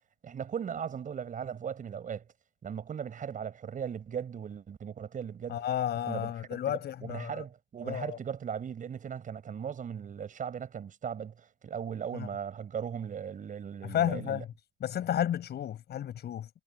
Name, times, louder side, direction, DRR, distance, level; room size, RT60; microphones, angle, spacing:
voice 1, 0.2-2.3 2.6-5.7 6.0-14.4, right 8 dB, 40° right, 6.7 m, -38 dB
voice 2, 5.5-7.4 7.8-8.2 12.1-12.3 13.8-14.5 14.8-16.5, left 10 dB, 50° left, 7.6 m, -32 dB
cardioid pair, 110°, 21 cm